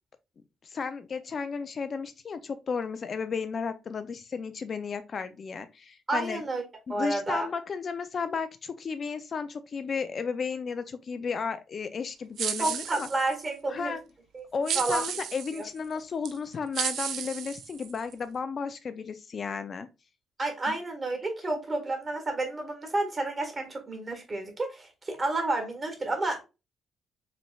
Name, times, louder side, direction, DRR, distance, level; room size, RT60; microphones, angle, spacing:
voice 1, 0.6-6.4 6.9-13.1 13.7-14.0 14.5-19.9 20.7-20.8, left 5 dB, 45° left, 0.4 m, -34 dB
voice 2, 6.1-6.6 6.9-7.5 12.6-14.0 14.3-14.4 14.7-15.0 15.5-15.6 20.4-26.4, right 2 dB, 30° right, 1.6 m, -30 dB
sound 1, 12.4-13.5 14.7-15.6 16.2-16.4 16.7-18.1, right 9 dB, 75° right, 0.5 m, -33 dB
4.9 x 3.2 x 2.3 m
cardioid pair, 90°, 0 cm